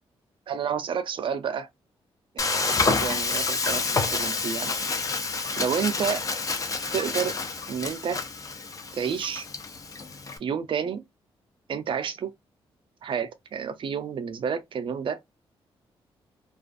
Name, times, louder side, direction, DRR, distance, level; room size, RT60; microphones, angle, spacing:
voice 1, 0.5-1.7 2.3-4.8 5.6-6.3 6.9-7.4 7.7-8.2 8.9-9.5 10.4-11.0 11.7-12.3 13.0-15.2, right 7 dB, 55° right, 0.5 m, -30 dB
Frying (food), 2.4-10.4, left 4 dB, 35° left, 0.5 m, -28 dB
2.4 x 2.4 x 2.3 m
cardioid pair, 85°, 10 cm